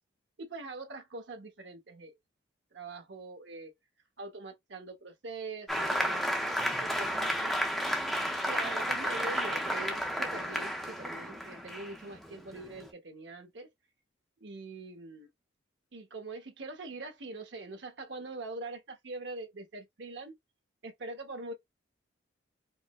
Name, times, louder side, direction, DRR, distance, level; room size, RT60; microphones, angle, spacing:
voice 1, 0.4-2.2 2.7-3.7 4.2-6.2 6.8-7.6 8.5-13.7 14.4-15.3 15.9-20.4 20.8-21.5, right 3 dB, 65° right, 0.8 m, -43 dB
Applause, 5.7-12.9, equal, ahead, 0.5 m, -32 dB
4.7 x 2.0 x 2.2 m
head